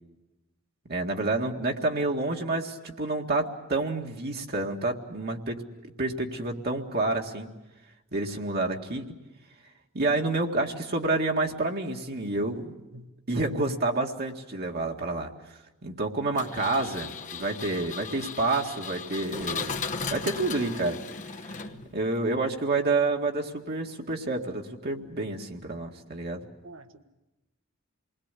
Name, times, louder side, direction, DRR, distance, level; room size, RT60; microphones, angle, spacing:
voice 1, 0.9-7.5 8.1-9.1 9.9-12.7 13.3-15.3 15.8-21.0 21.5-21.7 21.9-26.5, right 2 dB, 50° right, 1 dB, 2.0 m, -29 dB
Engine, 16.4-22.1, left 5 dB, 35° left, 1.1 m, -36 dB
voice 2, 26.6-27.0, right 1 dB, 65° right, 7 dB, 1.6 m, -47 dB
28.0 x 21.0 x 8.3 m, 1.0 s
head